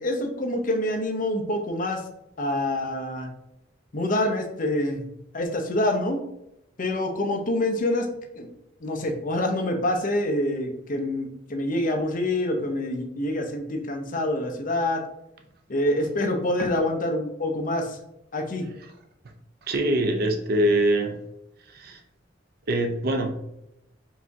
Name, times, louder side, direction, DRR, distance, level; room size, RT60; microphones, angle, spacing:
voice 1, 0.0-2.0 2.4-3.3 3.9-5.0 5.3-6.2 6.8-8.1 8.4-8.5 8.8-15.0 15.7-18.0 18.3-18.7, left 1 dB, 45° left, 3 dB, 0.7 m, -26 dB
voice 2, 19.7-21.2 21.7-22.0 22.7-23.3, right 1 dB, 55° right, 5 dB, 0.6 m, -23 dB
4.9 x 2.7 x 3.4 m, 0.84 s
head